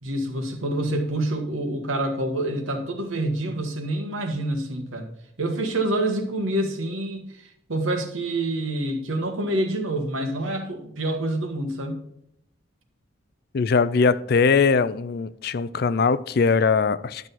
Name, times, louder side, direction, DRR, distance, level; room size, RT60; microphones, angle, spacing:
voice 1, 0.0-5.1 5.4-12.0, right 1 dB, 80° right, 1.5 m, -27 dB
voice 2, 13.5-17.3, left 5 dB, 50° left, 0.4 m, -21 dB
10.5 x 6.2 x 4.2 m
head